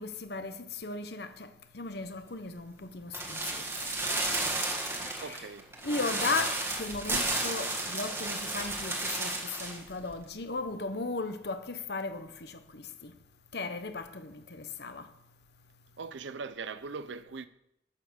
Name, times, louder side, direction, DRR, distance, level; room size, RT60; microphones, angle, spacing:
voice 1, 0.0-1.5 1.7-4.2 5.0-5.4 5.8-13.1 13.5-15.1, left 3 dB, 60° left, 1.0 m, -36 dB
sound 1, 3.1-9.8 10.1-10.2, right 2 dB, 15° right, 1.6 m, -33 dB
voice 2, 5.2-5.7 16.0-17.5, right 4 dB, 85° right, 0.6 m, -40 dB
11.5 x 7.2 x 6.4 m
head